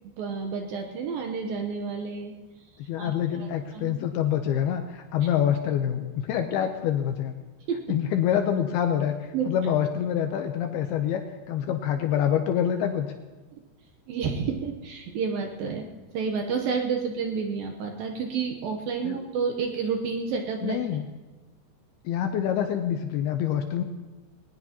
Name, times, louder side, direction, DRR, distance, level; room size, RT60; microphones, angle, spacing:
voice 1, 0.2-2.3 3.0-3.1 3.4-3.9 7.7-7.8 9.3-9.5 14.1-15.9 16.1-20.8, right 5 dB, 70° right, 3 dB, 2.3 m, -30 dB
voice 2, 2.9-7.4 7.9-13.1 19.0-19.2 20.6-21.1 22.0-23.8, left 9 dB, 80° left, 6 dB, 2.4 m, -26 dB
20.5 x 19.0 x 2.9 m, 1.2 s
omnidirectional pair, 5.1 m